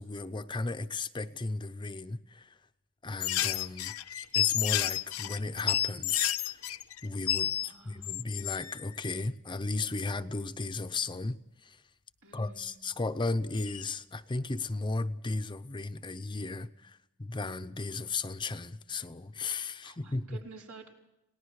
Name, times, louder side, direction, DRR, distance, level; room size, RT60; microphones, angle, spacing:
voice 1, 0.0-2.6 3.0-3.9 4.3-6.6 7.0-11.8 12.3-20.4, left 3 dB, 20° left, 10 dB, 0.7 m, -35 dB
sound 1, 3.2-7.7 8.0-8.9 13.6-13.8, left 11 dB, 75° left, 0.8 m, -30 dB
voice 2, 7.4-8.3 12.2-12.7 19.8-20.9, right 4 dB, 80° right, -1 dB, 5.6 m, -51 dB
29.5 x 19.0 x 4.8 m, 0.87 s
head